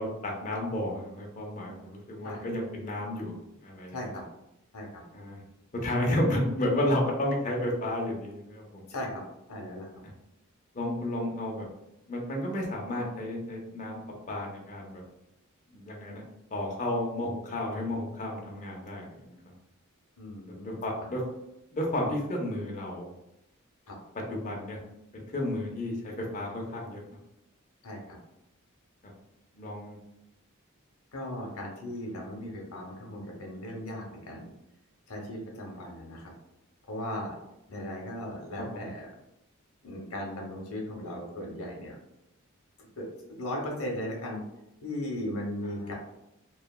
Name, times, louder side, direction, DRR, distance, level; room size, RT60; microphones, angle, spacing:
voice 1, 0.0-3.4 3.6-4.1 5.1-5.4 5.8-8.8 10.7-11.7 12.1-14.0 14.3-15.0 15.7-16.2 16.5-19.4 20.4-21.2 21.7-23.1 24.1-24.8 25.1-27.0 29.5-30.0 38.7-38.8 45.6-45.9, left 1 dB, 35° left, -1 dB, 0.6 m, -32 dB
voice 2, 3.9-4.2 4.7-4.9 8.9-9.2 9.5-9.9 20.2-20.8 23.9-24.0 27.8-28.2 31.1-34.5 35.1-36.3 36.9-37.3 37.7-39.1 39.8-42.0 43.0-43.1 43.4-44.4 44.8-45.9, left 1 dB, 80° left, -1 dB, 0.8 m, -37 dB
3.1 x 2.2 x 2.3 m, 0.88 s
head